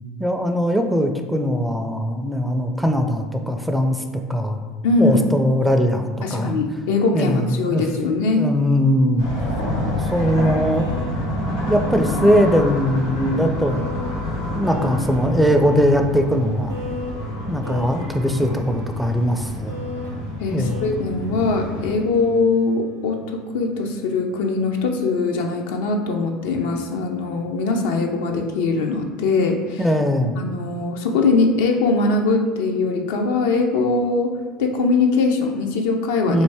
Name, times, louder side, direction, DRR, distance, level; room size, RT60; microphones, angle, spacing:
voice 1, 0.2-4.0 4.3-4.6 5.0-6.5 7.1-7.8 8.4-9.3 9.9-10.9 11.6-13.9 14.5-16.8 17.5-19.8 20.5-20.8 29.8-30.4 36.3-36.4, equal, 5° right, 4 dB, 0.4 m, -20 dB
voice 2, 4.8-5.3 6.2-8.5 20.4-29.8 30.4-34.3 34.6-36.4, left 3 dB, 70° left, 3 dB, 0.4 m, -21 dB
sound 1, 9.2-21.9, left 1 dB, 85° left, 1.0 m, -28 dB
sound 2, 10.1-25.2, right 2 dB, 80° right, 0.6 m, -35 dB
3.1 x 2.5 x 3.3 m, 1.4 s
hypercardioid pair, 75°, 0 cm